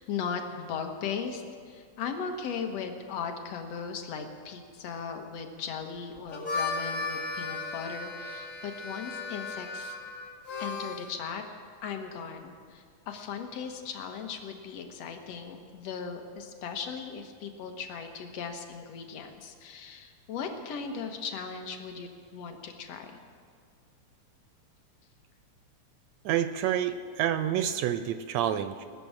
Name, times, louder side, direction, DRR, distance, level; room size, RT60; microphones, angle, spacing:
voice 1, 0.0-10.0 10.6-11.4 11.8-23.1, left 6 dB, 65° left, 5 dB, 2.1 m, -38 dB
Harmonica, 6.2-11.1, left 3 dB, 45° left, 1.0 m, -35 dB
voice 2, 26.2-28.9, right 10 dB, 80° right, 10 dB, 1.6 m, -28 dB
20.5 x 6.9 x 8.7 m, 2.1 s
omnidirectional pair, 3.4 m